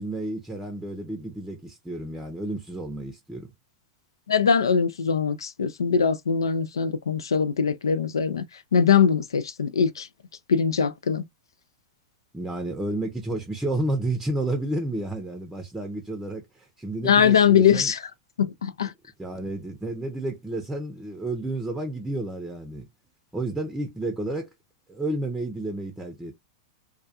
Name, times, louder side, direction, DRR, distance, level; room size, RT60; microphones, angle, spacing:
voice 1, 0.0-3.5 12.3-17.9 19.2-22.9 23.3-24.5 24.9-26.4, right 2 dB, 10° right, 0.6 m, -31 dB
voice 2, 4.3-8.4 8.7-10.1 10.5-11.2 17.0-18.0 18.4-18.9, left 7 dB, 85° left, 0.3 m, -21 dB
2.3 x 2.2 x 2.7 m
hypercardioid pair, 105°, 2 cm